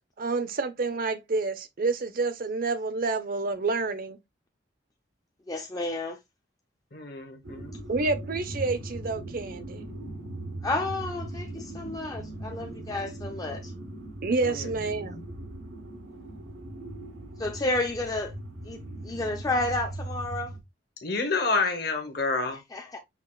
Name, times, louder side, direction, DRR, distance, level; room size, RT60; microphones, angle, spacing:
voice 1, 0.2-4.2 7.9-9.8 14.2-15.2, right 3 dB, 50° right, 0.6 m, -28 dB
voice 2, 5.5-6.2 10.6-13.7 17.4-18.3 18.6-18.8 19.0-20.5 22.7-23.0, left 2 dB, 20° left, 0.4 m, -31 dB
voice 3, 6.9-7.7 14.4-14.7 15.0-15.2 21.0-22.6, left 3 dB, 60° left, 1.0 m, -29 dB
sound 1, 7.4-20.6, right 1 dB, 85° right, 0.9 m, -39 dB
5.8 x 2.4 x 2.3 m
head